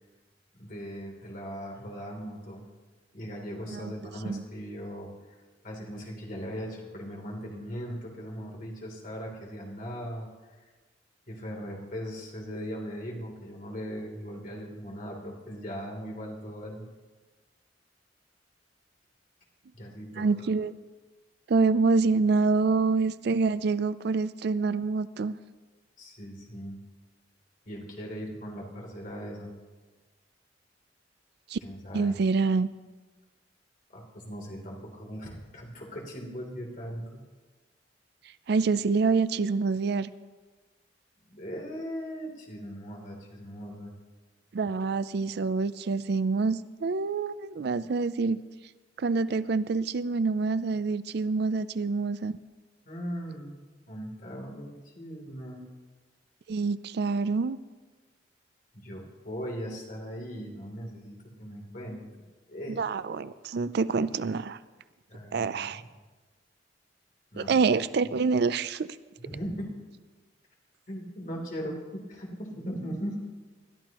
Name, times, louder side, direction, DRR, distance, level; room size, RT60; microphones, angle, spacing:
voice 1, 0.6-2.6 3.1-5.4 5.6-10.3 11.3-16.8 19.7-20.3 26.0-26.8 27.6-29.5 31.6-32.1 33.9-37.2 41.3-43.9 52.8-53.6 53.9-55.6 58.7-62.0 62.5-62.8 65.1-65.8 67.3-67.6 69.2-69.7 70.9-73.2, equal, 45° left, -1 dB, 3.2 m, -39 dB
voice 2, 20.2-20.8 21.5-25.4 31.5-31.6 31.9-32.7 38.5-40.1 44.5-48.4 49.0-52.4 56.5-57.6 62.8-64.6 65.3-65.8 67.4-68.9, right 4 dB, 60° right, 15 dB, 0.4 m, -26 dB
21.0 x 13.5 x 3.0 m, 1.3 s
head